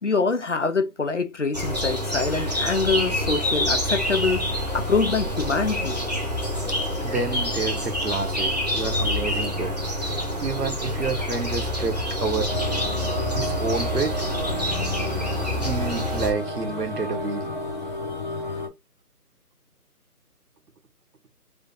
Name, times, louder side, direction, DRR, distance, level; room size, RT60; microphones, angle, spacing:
voice 1, 0.0-4.5 4.7-6.0, left 4 dB, 50° left, 0.6 m, -24 dB
sound 1, 1.5-16.3, left 1 dB, 25° right, 0.8 m, -27 dB
voice 2, 7.0-9.7 10.1-10.2 10.4-12.5 13.3-14.1 15.5-17.5, right 4 dB, 90° right, 1.4 m, -29 dB
sound 2, 12.5-18.7, left 1 dB, 30° left, 1.3 m, -31 dB
3.3 x 2.7 x 3.9 m
figure-of-eight pair, 175°, 47 cm